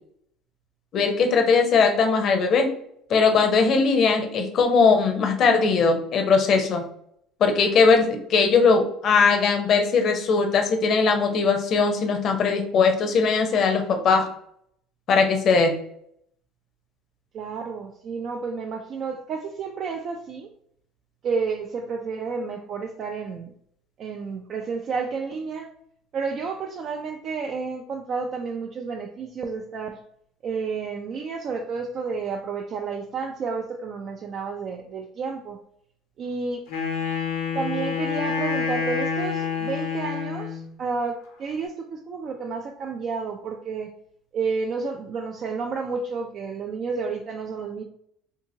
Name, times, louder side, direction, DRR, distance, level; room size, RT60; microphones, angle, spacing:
voice 1, 0.9-2.7 3.1-6.8 7.4-14.3 15.1-15.7, left 4 dB, 55° left, 4 dB, 0.6 m, -20 dB
voice 2, 17.3-20.5 21.2-23.5 24.0-25.7 26.1-30.0 30.4-35.6 36.2-36.6 37.5-43.9 44.3-47.8, right 4 dB, 50° right, 2 dB, 0.3 m, -31 dB
Wind instrument woodwind instrument, 36.7-40.7, left 6 dB, 85° left, 0.7 m, -27 dB
2.7 x 2.7 x 2.7 m, 0.68 s
supercardioid pair, 90°, 0 cm